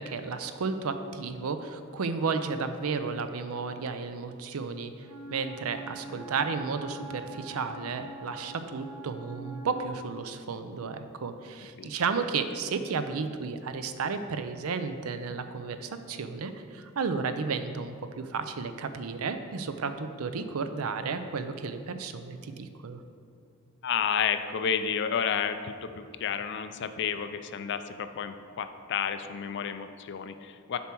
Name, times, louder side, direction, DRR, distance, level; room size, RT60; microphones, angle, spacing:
voice 1, 0.0-23.0, right 5 dB, 75° right, 9 dB, 0.5 m, -33 dB
Wind instrument woodwind instrument, 5.0-9.8, right 2 dB, 20° right, 1.4 m, -44 dB
voice 2, 23.8-30.8, left 7 dB, 55° left, 10 dB, 0.4 m, -31 dB
7.0 x 4.4 x 6.1 m, 2.4 s
head